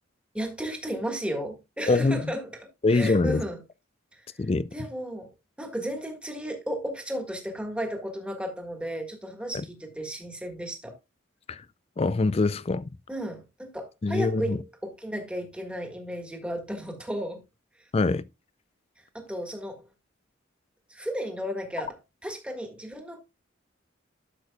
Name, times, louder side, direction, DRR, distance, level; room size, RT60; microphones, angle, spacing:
voice 1, 0.3-2.6 2.9-3.6 4.1-4.3 4.7-5.3 5.6-11.0 13.1-17.4 17.8-17.9 19.0-19.9 20.9-23.2, equal, 5° right, 1.6 m, -34 dB
voice 2, 1.9-2.3 2.8-3.4 4.4-4.7 9.5-9.6 11.5-11.6 12.0-12.9 14.0-14.6 17.9-18.2, left 3 dB, 30° left, 0.4 m, -24 dB
12.5 x 6.7 x 2.3 m
head